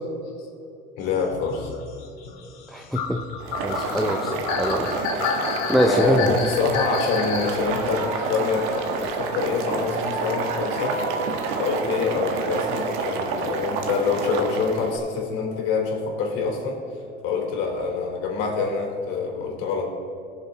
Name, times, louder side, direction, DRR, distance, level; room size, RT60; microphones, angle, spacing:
voice 1, 1.0-1.7 5.8-11.0 11.6-16.8 17.2-19.9, left 4 dB, 70° left, 1 dB, 3.2 m, -26 dB
sound 1, 1.2-7.6 8.9-9.0, left 6 dB, 85° left, 1.9 m, -30 dB
voice 2, 2.7-3.2 3.6-6.3, equal, ahead, 3 dB, 0.4 m, -24 dB
Boiling, 3.4-15.0, right 4 dB, 75° right, 1.4 m, -29 dB
Laughter, 7.2-14.7, right 2 dB, 45° right, 2.9 m, -35 dB
19.5 x 7.0 x 3.9 m, 2.8 s
cardioid pair, 160°, 21 cm